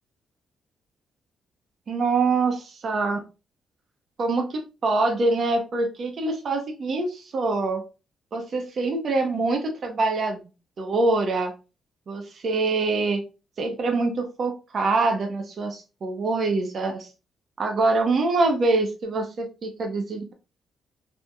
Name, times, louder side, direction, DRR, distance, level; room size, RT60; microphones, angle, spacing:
voice 1, 1.9-3.2 4.2-7.8 8.3-10.5 10.8-11.5 12.1-13.2 13.6-17.1 17.6-20.3, right 3 dB, 55° right, 4 dB, 0.6 m, -25 dB
2.9 x 2.1 x 2.3 m, 0.30 s
cardioid pair, 70°, 0 cm